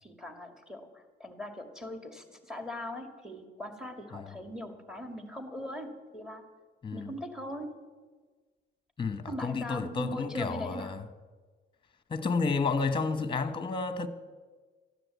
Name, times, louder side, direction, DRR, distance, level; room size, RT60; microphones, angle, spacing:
voice 1, 0.0-6.4 6.9-7.7 9.3-11.0, left 1 dB, 5° right, 2.1 m, -40 dB
voice 2, 9.0-11.0 12.1-14.1, left 4 dB, 25° left, 1.1 m, -31 dB
14.0 x 9.8 x 8.2 m
cardioid pair, 90°, 20 cm